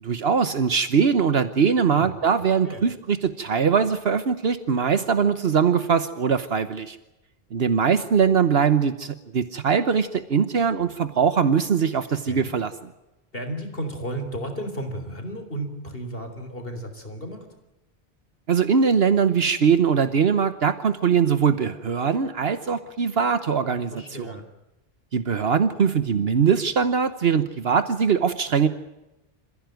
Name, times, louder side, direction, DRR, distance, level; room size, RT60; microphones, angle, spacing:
voice 1, 0.0-7.0 7.5-12.9 18.5-24.4 25.1-28.7, right 6 dB, 70° right, 12 dB, 1.3 m, -21 dB
voice 2, 13.3-17.5 23.7-24.5, right 1 dB, 60° left, 6 dB, 4.0 m, -33 dB
27.0 x 16.0 x 9.3 m, 0.98 s
omnidirectional pair, 1.1 m